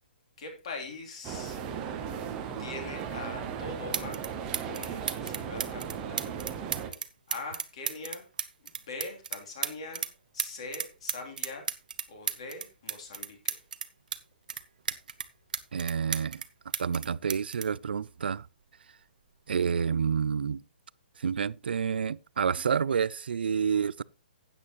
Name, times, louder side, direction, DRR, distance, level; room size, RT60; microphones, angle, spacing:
voice 1, 0.4-1.6 2.6-4.2 4.6-6.3 7.3-8.3 8.6-11.6 12.1-13.6, left 3 dB, 35° left, 3.2 m, -42 dB
sound 1, 1.2-6.9, right 7 dB, 15° right, 0.8 m, -37 dB
sound 2, 3.9-4.3 4.5-10.1 10.4-14.2 14.5-16.5 16.7-18.6 19.5-19.7, right 7 dB, 50° right, 0.9 m, -34 dB
voice 2, 15.7-16.4 16.8-18.5 19.5-20.6 21.2-24.0, right 6 dB, 70° right, 0.4 m, -29 dB
13.0 x 8.8 x 3.0 m
hypercardioid pair, 180°, 6 cm